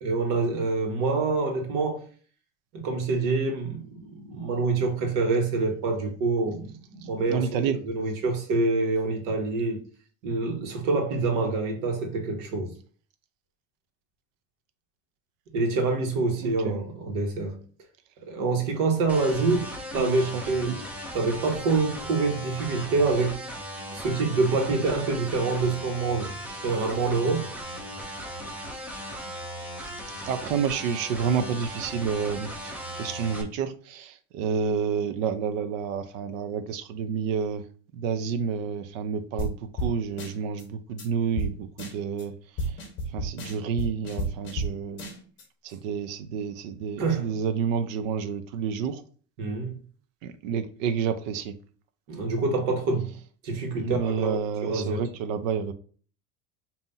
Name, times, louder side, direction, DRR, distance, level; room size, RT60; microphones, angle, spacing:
voice 1, 0.0-2.0 2.7-9.8 10.2-12.7 15.5-17.6 18.3-19.7 19.9-20.8 21.1-23.4 23.9-27.5 47.0-47.3 49.4-49.7 52.1-53.1 53.4-55.0, right 3 dB, 65° right, 1.5 m, -26 dB
voice 2, 7.3-7.8 16.4-16.8 20.0-20.7 29.2-29.3 30.2-37.6 37.9-42.3 42.6-42.8 43.1-45.0 45.6-49.0 50.2-51.5 53.8-55.7, right 6 dB, 90° right, 0.7 m, -29 dB
sound 1, 19.1-33.4, equal, 5° right, 0.3 m, -37 dB
sound 2, 39.4-39.5 39.8-39.9 40.2-40.6 41.0-41.1 41.4-41.5 41.8-42.2 42.6-44.7 45.0-45.4, right 1 dB, 30° left, 1.2 m, -31 dB
5.5 x 2.8 x 2.7 m
cardioid pair, 165°, 38 cm